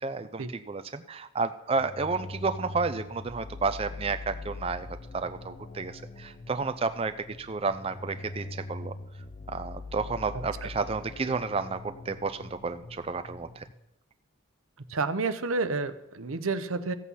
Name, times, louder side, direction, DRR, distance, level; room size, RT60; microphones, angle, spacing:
voice 1, 0.0-4.9 5.1-8.9 9.5-13.7, right 4 dB, 30° right, 10 dB, 0.4 m, -31 dB
sound 1, 1.7-13.7, left 2 dB, 25° left, 0.6 m, -43 dB
voice 2, 14.9-16.9, right 3 dB, 90° right, 11 dB, 0.9 m, -30 dB
14.5 x 8.4 x 5.6 m, 0.88 s
head